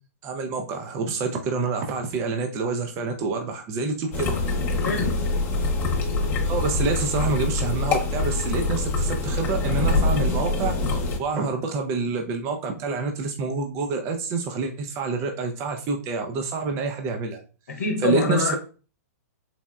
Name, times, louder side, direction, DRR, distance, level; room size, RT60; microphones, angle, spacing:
voice 1, 0.2-4.3 6.4-17.4 18.0-18.5, right 4 dB, 30° right, 0.5 m, -27 dB
sound 1, 4.1-11.2, left 3 dB, 25° left, 0.6 m, -24 dB
voice 2, 4.8-5.5 17.7-18.6, left 4 dB, 80° left, 0.8 m, -26 dB
4.0 x 2.1 x 2.3 m
hypercardioid pair, 120°, 9 cm